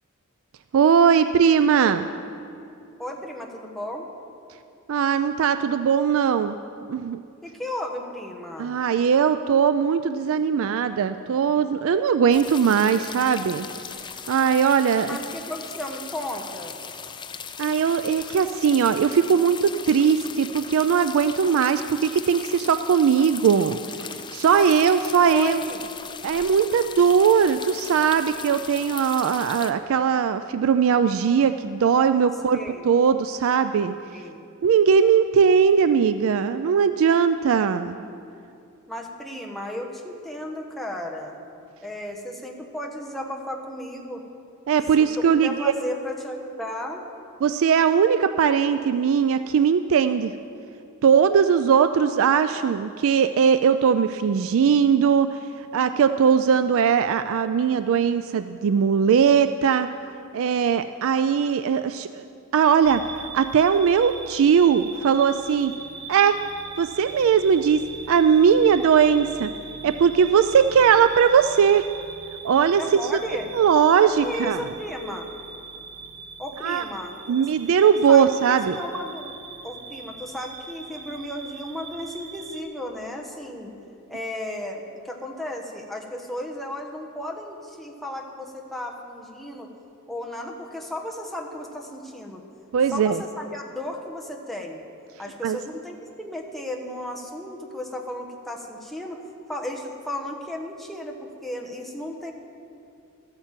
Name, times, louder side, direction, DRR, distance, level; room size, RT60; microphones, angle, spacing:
voice 1, 0.7-2.1 4.9-6.6 6.9-7.2 8.6-13.7 14.3-15.2 17.6-23.8 24.3-25.6 26.2-32.6 32.8-33.9 34.6-38.0 44.7-45.7 47.4-50.3 51.0-55.4 55.7-59.9 60.3-62.2 62.5-65.7 66.1-66.4 66.8-67.8 68.1-69.5 69.8-71.9 72.4-73.0 73.5-74.6 76.6-76.8 77.3-78.8 92.7-93.2 95.4-95.6, right 7 dB, 65° right, 11 dB, 0.3 m, -19 dB
voice 2, 3.0-4.1 7.4-8.8 15.0-16.7 24.5-24.7 25.2-25.9 32.5-32.9 34.1-34.5 38.9-41.4 41.8-44.2 45.0-47.0 72.8-73.5 74.2-75.3 76.4-77.4 78.1-79.3 79.6-83.7 84.1-89.7 90.1-92.4 92.9-94.8 95.2-99.2 99.5-102.3, left 1 dB, ahead, -1 dB, 1.2 m, -34 dB
sound 1, 12.3-29.7, left 6 dB, 20° left, 0.4 m, -38 dB
sound 2, 62.8-82.6, right 5 dB, 45° right, 1.2 m, -41 dB
13.0 x 8.8 x 7.4 m, 2.6 s
head